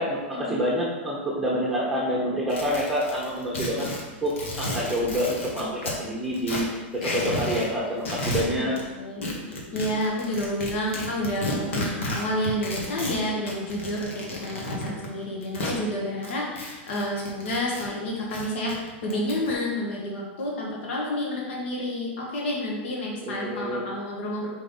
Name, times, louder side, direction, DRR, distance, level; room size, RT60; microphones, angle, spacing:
voice 1, 0.0-3.9 4.2-6.7 6.9-8.8 23.3-23.8, equal, ahead, -6 dB, 1.0 m, -27 dB
sound 1, 2.5-6.0 6.3-7.7 8.0-8.8 9.2-15.8 16.2-17.9 18.2-19.5, left 1 dB, 90° left, 1.5 m, -32 dB
voice 2, 8.4-24.5, left 1 dB, 70° left, -3 dB, 1.5 m, -30 dB
4.9 x 3.8 x 5.3 m, 1.2 s
supercardioid pair, 150°, 7 cm